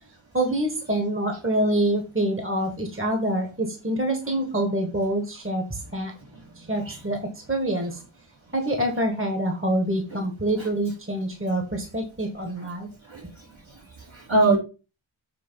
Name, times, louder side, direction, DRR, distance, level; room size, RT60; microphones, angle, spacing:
voice 1, 0.3-6.1 6.6-7.2 7.5-8.0 8.5-12.9, right 1 dB, 25° right, 3 dB, 1.6 m, -26 dB
voice 2, 13.1-14.6, right 2 dB, 70° right, -3 dB, 3.5 m, -25 dB
7.6 x 3.2 x 5.6 m, 0.32 s
wide cardioid pair, 50°, 48 cm